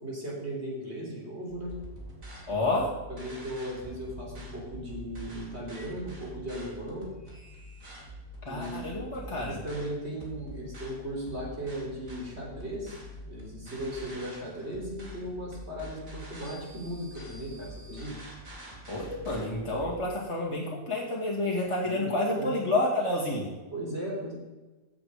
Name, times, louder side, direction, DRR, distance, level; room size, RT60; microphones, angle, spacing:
voice 1, 0.0-1.8 3.1-7.1 8.5-9.0 9.3-13.0 13.3-18.2 21.8-22.0 22.3-22.6 23.7-24.3, right 1 dB, 45° right, -3 dB, 4.0 m, -37 dB
sound 1, 1.5-20.0, equal, 60° right, 3.1 m, -45 dB
voice 2, 2.5-3.0 8.4-9.6 18.9-23.5, left 2 dB, 20° left, -5 dB, 2.3 m, -29 dB
15.0 x 7.3 x 5.2 m, 1.2 s
omnidirectional pair, 1.6 m